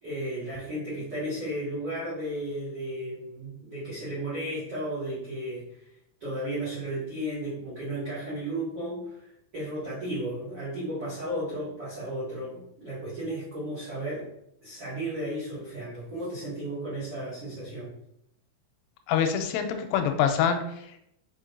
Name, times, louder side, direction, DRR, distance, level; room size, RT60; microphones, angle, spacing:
voice 1, 0.0-5.7 6.2-14.3 14.6-17.9, right 1 dB, 75° right, -9 dB, 1.2 m, -34 dB
voice 2, 19.1-21.0, left 8 dB, 85° left, 6 dB, 3.2 m, -26 dB
6.1 x 5.9 x 2.7 m, 0.77 s
omnidirectional pair, 5.9 m